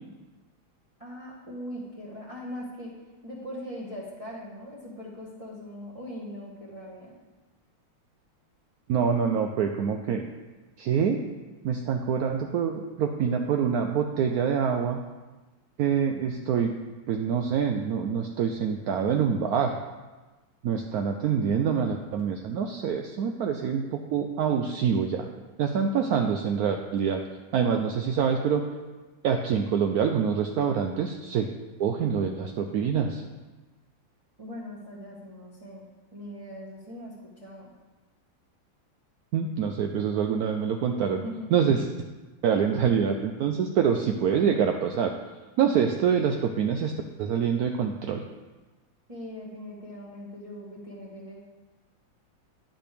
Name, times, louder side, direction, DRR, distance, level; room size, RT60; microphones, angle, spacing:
voice 1, 1.0-2.9 3.2-7.1 34.4-35.8 36.1-37.7 41.2-41.5 49.1-51.4, equal, 20° right, -6 dB, 1.1 m, -40 dB
voice 2, 8.9-10.2 10.8-11.2 11.6-15.0 15.8-16.7 17.1-19.8 20.6-25.3 25.6-27.2 27.5-28.6 29.2-31.5 31.8-33.2 39.3-41.2 41.5-41.8 42.4-45.1 45.6-46.9 47.2-48.2, right 7 dB, 80° right, 4 dB, 0.8 m, -25 dB
10.5 x 7.5 x 3.4 m, 1.2 s
omnidirectional pair, 2.2 m